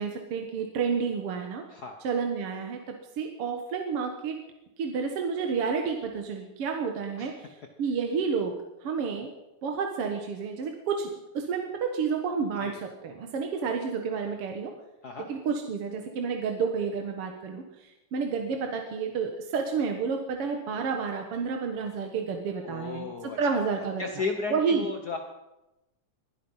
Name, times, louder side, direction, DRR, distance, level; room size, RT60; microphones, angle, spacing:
voice 1, 0.0-1.6 2.0-4.4 4.8-8.5 8.8-9.3 9.6-14.7 15.2-24.1 24.5-24.9, right 5 dB, 55° right, 3 dB, 2.0 m, -30 dB
voice 2, 22.6-25.2, left 4 dB, 75° left, 4 dB, 0.8 m, -35 dB
21.5 x 12.0 x 5.6 m, 0.95 s
omnidirectional pair, 3.6 m